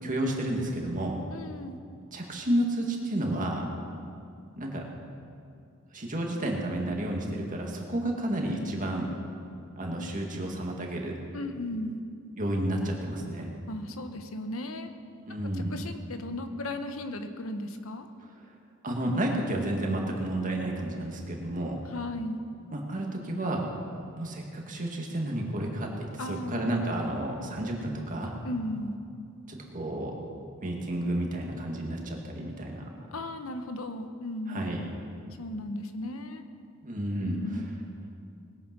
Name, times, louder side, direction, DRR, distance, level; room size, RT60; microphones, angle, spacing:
voice 1, 0.0-1.2 2.1-3.6 4.6-4.8 5.9-9.1 9.8-11.1 12.4-13.5 15.3-15.7 18.8-21.8 22.7-23.6 24.2-25.9 26.3-28.3 29.5-30.1 30.6-32.8 34.5-34.9 36.8-37.4, right 1 dB, 40° right, 0 dB, 2.1 m, -31 dB
voice 2, 1.3-1.8 11.3-12.0 13.7-14.9 15.5-18.1 21.8-22.4 26.2-26.7 28.4-29.0 33.1-35.0 35.4-36.4 37.2-37.7, left 1 dB, 70° left, 8 dB, 1.0 m, -36 dB
20.0 x 8.8 x 6.1 m, 2.4 s
head